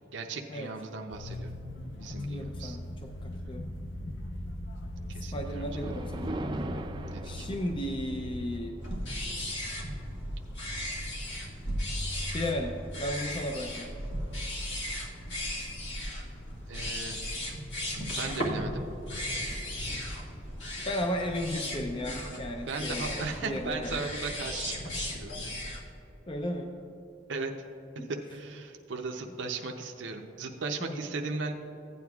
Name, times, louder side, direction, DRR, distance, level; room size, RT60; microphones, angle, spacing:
voice 1, 0.1-1.5 2.0-2.8 5.1-5.8 7.1-7.5 16.7-17.2 18.1-18.9 22.6-25.5 27.3-27.5 28.0-31.5, right 4 dB, 70° right, 3 dB, 0.6 m, -37 dB
sound 1, 1.1-8.6, left 1 dB, 85° left, 0.7 m, -39 dB
voice 2, 2.1-3.7 5.1-6.3 7.2-8.8 12.3-13.9 20.9-24.0 26.3-26.7 28.0-28.1 30.8-31.0, left 1 dB, 30° left, 3 dB, 0.5 m, -35 dB
Thunder, 5.4-14.0 14.5-14.7 15.4-15.5 15.9-16.0 18.1-18.4 18.7-18.8 19.0-25.0, right 1 dB, 25° right, 0.4 m, -45 dB
sound 2, 8.8-25.8, left 1 dB, 70° left, 1.6 m, -36 dB
15.5 x 9.3 x 2.4 m, 2.9 s
head